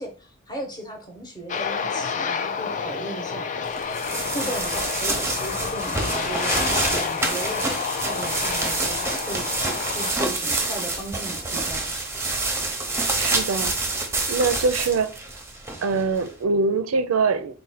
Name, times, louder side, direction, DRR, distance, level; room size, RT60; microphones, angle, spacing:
voice 1, 0.0-3.5 4.2-7.6 8.0-9.4 9.9-11.9, right 1 dB, 20° left, 0.9 m, -36 dB
Aircraft, 1.5-10.1, left 6 dB, 35° left, 0.4 m, -29 dB
sound 1, 3.7-16.3, right 2 dB, 10° right, 0.6 m, -27 dB
voice 2, 13.2-13.8 14.3-15.1 15.8-17.5, right 4 dB, 85° right, 0.4 m, -23 dB
4.1 x 2.2 x 4.1 m
head